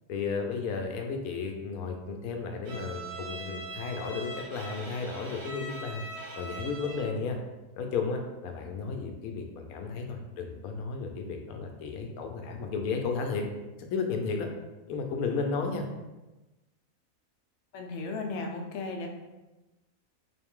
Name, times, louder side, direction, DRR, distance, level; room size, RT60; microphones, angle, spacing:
voice 1, 0.1-6.0 6.4-7.4 7.8-13.4 13.8-14.5 14.9-15.9, left 4 dB, 80° left, 4 dB, 1.1 m, -33 dB
Bowed string instrument, 2.6-7.2, right 2 dB, 70° right, 1.1 m, -41 dB
voice 2, 17.7-19.1, left 3 dB, 65° left, 3 dB, 0.8 m, -35 dB
3.8 x 2.5 x 3.6 m, 1.1 s
omnidirectional pair, 1.5 m